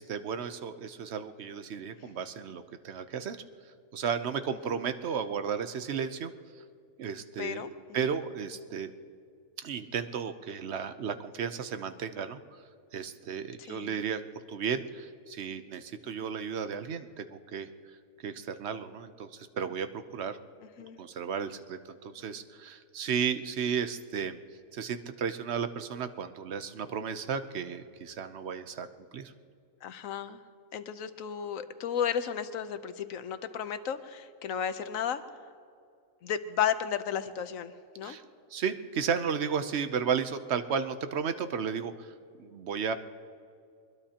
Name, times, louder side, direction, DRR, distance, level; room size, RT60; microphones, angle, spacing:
voice 1, 0.0-3.4 3.9-6.3 7.0-7.7 7.9-8.9 9.6-12.4 12.9-14.2 14.5-17.7 18.2-20.4 21.0-24.4 24.7-28.9 29.1-29.3 38.0-38.2 38.5-42.9, right 7 dB, 60° right, 10 dB, 1.0 m, -34 dB
voice 2, 7.4-7.7 13.7-14.0 20.8-21.0 29.8-30.4 30.7-35.2 36.2-38.2, left 8 dB, 90° left, 11 dB, 1.2 m, -33 dB
23.5 x 21.5 x 2.9 m, 2.3 s
omnidirectional pair, 1.3 m